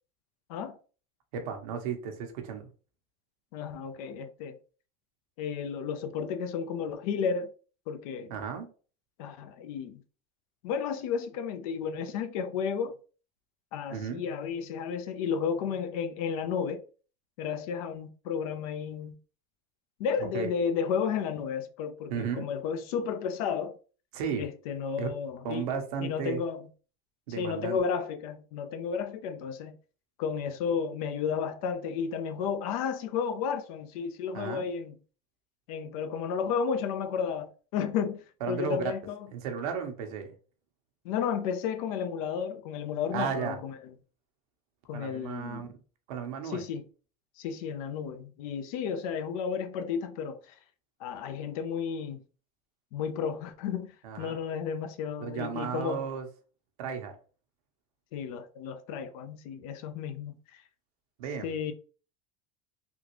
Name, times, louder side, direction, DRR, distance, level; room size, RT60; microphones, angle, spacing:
voice 1, 1.3-2.7 8.3-8.7 13.9-14.2 20.3-20.5 22.1-22.5 24.1-24.5 25.0-25.1 25.4-26.4 27.3-27.8 34.3-34.7 38.4-38.8 39.3-40.3 43.1-43.6 44.9-45.7 46.1-46.6 54.0-54.4 55.2-56.3 56.8-57.2 61.2-61.6, right 7 dB, 80° right, 1.0 m, -34 dB
voice 2, 3.5-4.6 5.4-7.5 7.9-8.3 9.2-10.0 10.6-13.0 13.7-16.8 17.4-19.2 20.0-23.8 24.4-25.7 26.0-26.7 27.4-29.8 30.2-34.9 35.7-39.3 41.0-43.8 44.9-45.7 46.4-46.8 47.4-50.5 51.0-52.2 52.9-56.0 58.1-60.4 61.4-61.7, left 6 dB, 75° left, 0.6 m, -32 dB
3.5 x 2.4 x 3.0 m
supercardioid pair, 110°, 19 cm